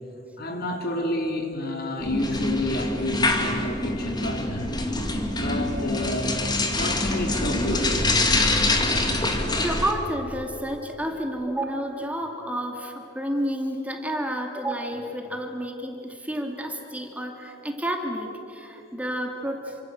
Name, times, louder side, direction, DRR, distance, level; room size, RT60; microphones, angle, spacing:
voice 1, 0.4-4.8 5.4-6.4 6.7-8.0, left 1 dB, 55° left, 3 dB, 3.5 m, -29 dB
sound 1, 2.0-9.9, left 2 dB, 20° left, 2.6 m, -25 dB
voice 2, 9.6-19.8, right 1 dB, 10° right, 3 dB, 2.4 m, -30 dB
28.5 x 25.5 x 7.8 m, 3.0 s
head